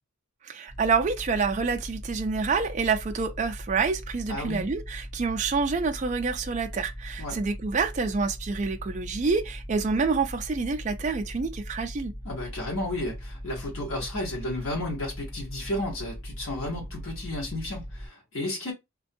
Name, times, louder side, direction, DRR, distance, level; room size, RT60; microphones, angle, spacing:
voice 1, 0.5-12.1, right 4 dB, 35° right, 0.3 m, -27 dB
sound 1, 0.7-18.1, equal, 85° left, 1.0 m, -40 dB
voice 2, 4.3-4.6 7.2-7.4 12.2-18.7, left 1 dB, 70° left, 1.1 m, -33 dB
2.5 x 2.2 x 2.5 m
head